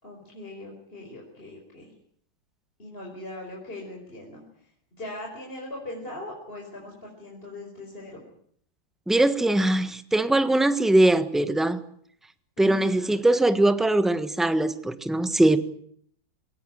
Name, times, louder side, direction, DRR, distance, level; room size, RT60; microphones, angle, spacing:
voice 1, 0.0-1.9 2.8-8.2 12.6-13.0, left 1 dB, 25° left, 5.4 m, -40 dB
voice 2, 9.1-11.8 12.6-15.6, right 1 dB, ahead, 0.9 m, -21 dB
23.0 x 18.5 x 9.1 m
omnidirectional pair, 2.2 m